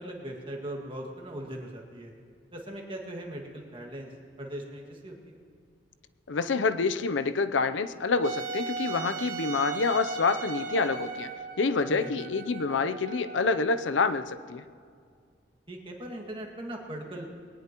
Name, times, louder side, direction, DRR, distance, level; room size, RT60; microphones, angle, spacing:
voice 1, 0.0-2.1 2.5-4.1 4.4-5.4 11.9-12.2 15.7-17.3, right 1 dB, 30° right, 0 dB, 2.0 m, -39 dB
voice 2, 6.3-11.3 11.6-14.6, left 4 dB, 85° left, 11 dB, 0.6 m, -27 dB
Wind instrument woodwind instrument, 8.2-13.9, right 5 dB, 45° right, 1.4 m, -37 dB
21.5 x 18.5 x 3.0 m, 2.2 s
head